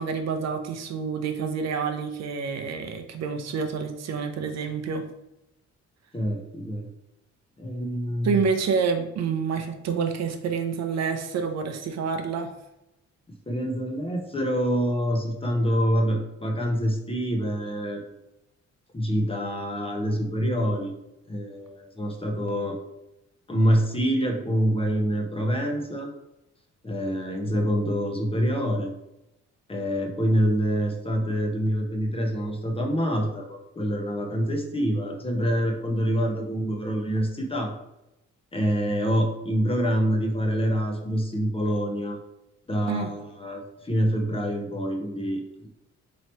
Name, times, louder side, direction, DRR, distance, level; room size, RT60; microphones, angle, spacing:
voice 1, 0.0-5.1 8.2-12.5 42.9-43.1, right 5 dB, 60° right, 6 dB, 0.6 m, -28 dB
voice 2, 6.1-6.9 7.6-8.3 13.5-18.0 18.9-20.9 21.3-22.8 23.5-26.1 26.8-28.9 29.7-37.7 38.5-42.2 42.7-45.7, equal, 20° left, 3 dB, 0.7 m, -26 dB
3.1 x 2.9 x 4.2 m, 0.87 s
cardioid pair, 90°, 30 cm